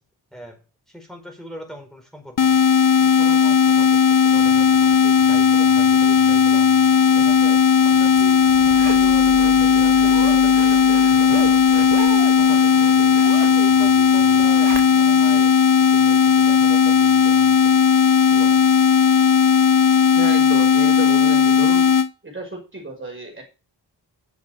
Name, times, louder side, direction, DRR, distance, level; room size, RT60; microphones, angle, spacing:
voice 1, 0.9-2.6 3.0-6.6 7.1-12.1 12.4-12.9 13.5-17.8 18.3-18.6, equal, ahead, 2 dB, 5.1 m, -41 dB
sound 1, 2.4-22.1, left 7 dB, 45° left, 0.8 m, -16 dB
sound 2, 4.3-15.4, right 5 dB, 55° right, 3.3 m, -42 dB
Zipper (clothing), 7.7-15.3 15.7-15.8, right 7 dB, 85° right, 1.5 m, -35 dB
voice 2, 20.1-22.0 22.2-23.5, right 1 dB, 30° right, 1 dB, 5.5 m, -33 dB
10.5 x 7.4 x 6.5 m, 0.32 s
wide cardioid pair, 90°, 43 cm